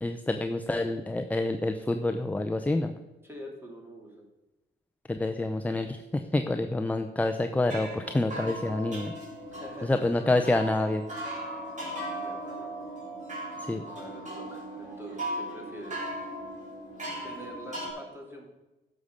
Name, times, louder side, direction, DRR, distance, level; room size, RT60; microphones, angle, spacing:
voice 1, 0.0-2.9 5.1-9.1 9.8-11.1 13.6-13.8, left 2 dB, 5° left, 7 dB, 0.5 m, -28 dB
voice 2, 3.2-4.2 9.5-10.1 12.2-12.7 13.9-16.1 17.2-18.5, equal, 10° right, 0 dB, 2.9 m, -45 dB
sound 1, 7.7-17.9, right 1 dB, 40° right, 4.2 m, -38 dB
11.0 x 6.6 x 5.1 m, 1.0 s
cardioid pair, 90°, 20 cm